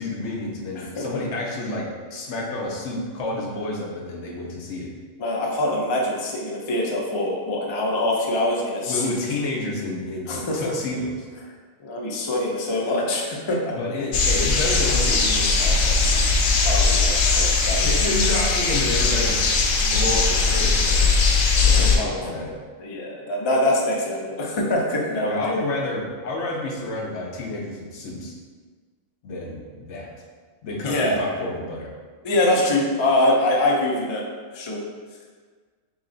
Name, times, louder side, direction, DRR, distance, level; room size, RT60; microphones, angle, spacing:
voice 1, 0.0-4.9 8.9-11.3 13.7-16.4 17.8-19.5 19.8-21.1 21.6-22.5 25.2-28.3 29.2-30.1 30.6-31.9, left 2 dB, 65° left, -1 dB, 0.9 m, -29 dB
voice 2, 5.2-9.1 10.3-10.7 11.8-13.7 16.6-17.9 21.6-22.2 22.8-25.5 30.8-31.2 32.2-34.2 34.5-34.8, left 1 dB, 50° left, -3 dB, 0.3 m, -24 dB
sound 1, 14.1-22.0, left 4 dB, 90° left, 1.0 m, -19 dB
3.2 x 3.1 x 3.8 m, 1.5 s
omnidirectional pair, 1.4 m